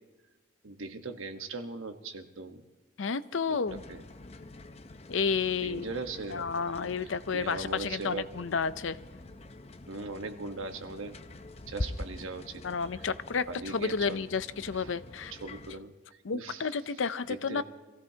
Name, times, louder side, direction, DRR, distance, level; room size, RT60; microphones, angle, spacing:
voice 1, 0.6-2.6 3.5-3.6 3.9-4.0 5.6-6.7 7.0-8.3 9.9-11.2 11.7-12.6 13.5-14.3 14.8-14.9 15.3-15.9 16.3-16.7 17.5-17.6, right 3 dB, 85° right, 6 dB, 1.3 m, -39 dB
voice 2, 3.0-3.8 5.1-6.0 6.3-9.0 12.6-15.3 16.2-17.6, left 5 dB, 70° left, 14 dB, 0.6 m, -31 dB
sound 1, 3.7-15.8, left 2 dB, 30° left, 0.6 m, -45 dB
25.5 x 16.5 x 2.8 m, 1.2 s
head